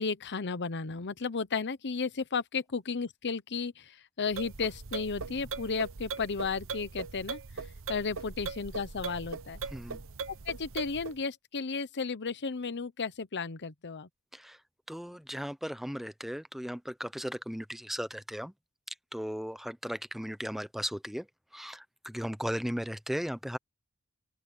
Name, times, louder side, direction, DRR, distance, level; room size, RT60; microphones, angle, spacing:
voice 1, 0.0-7.4 7.9-9.6 10.4-14.1, left 4 dB, 50° left, 0.9 m, -34 dB
sound 1, 4.3-11.2, right 4 dB, 65° right, 1.0 m, -40 dB
voice 2, 14.9-18.5 19.1-21.3 21.5-23.6, equal, ahead, 0.8 m, -36 dB
open air
head